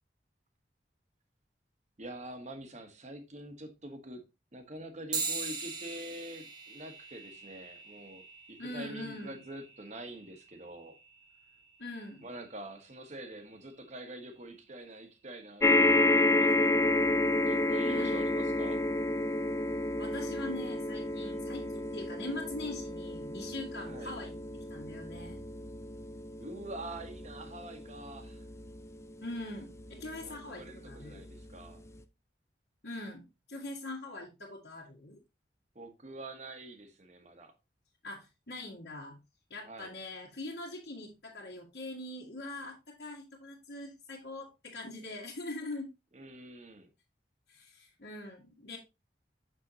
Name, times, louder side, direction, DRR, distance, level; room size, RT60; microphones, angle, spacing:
voice 1, 2.0-4.2 4.5-11.0 12.2-17.0 17.5-18.8 23.9-24.1 26.4-28.4 29.9-31.8 35.7-37.5 39.6-39.9 46.1-46.9, right 1 dB, 40° right, 1.2 m, -45 dB
sound 1, 5.1-14.9, right 4 dB, 25° right, 1.0 m, -43 dB
voice 2, 8.6-9.4 11.8-12.3 17.9-18.3 20.0-25.4 29.2-31.2 32.8-35.2 38.0-39.2 39.5-45.9 47.5-48.8, left 2 dB, 65° left, 1.8 m, -42 dB
sound 2, 15.6-30.2 30.9-31.0 31.3-31.4, left 2 dB, 15° left, 0.4 m, -30 dB
6.7 x 6.4 x 2.9 m
head